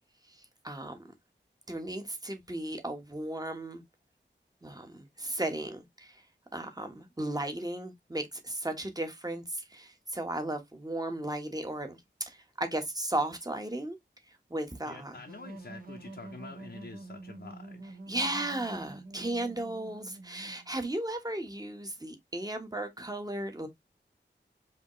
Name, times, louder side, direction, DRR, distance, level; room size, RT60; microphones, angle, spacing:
voice 1, 0.3-1.0 1.7-3.8 4.6-6.2 6.5-14.0 14.3-15.2 18.1-23.7, right 1 dB, 20° right, 1.2 m, -35 dB
voice 2, 14.8-17.8, left 3 dB, 65° left, 0.8 m, -47 dB
sound 1, 15.3-20.9, right 2 dB, 50° right, 1.1 m, -47 dB
5.1 x 2.9 x 3.0 m
wide cardioid pair, 60°, 19 cm